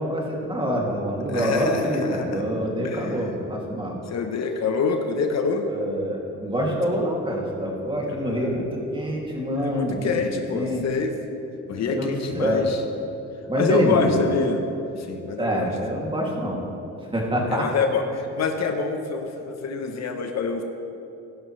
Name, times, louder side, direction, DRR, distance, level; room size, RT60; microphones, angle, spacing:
voice 1, 0.0-4.0 5.7-10.1 10.4-10.8 11.7-12.6 13.5-14.2 15.4-16.6 17.1-17.7, equal, 15° right, -2 dB, 2.5 m, -26 dB
voice 2, 1.3-2.4 2.8-3.1 4.1-5.7 8.1-8.5 9.6-11.2 11.7-12.8 13.6-14.7 15.0-15.7 17.5-20.6, left 5 dB, 60° left, 5 dB, 1.0 m, -26 dB
16.0 x 11.0 x 3.2 m, 2.9 s
cardioid pair, 90°, 30 cm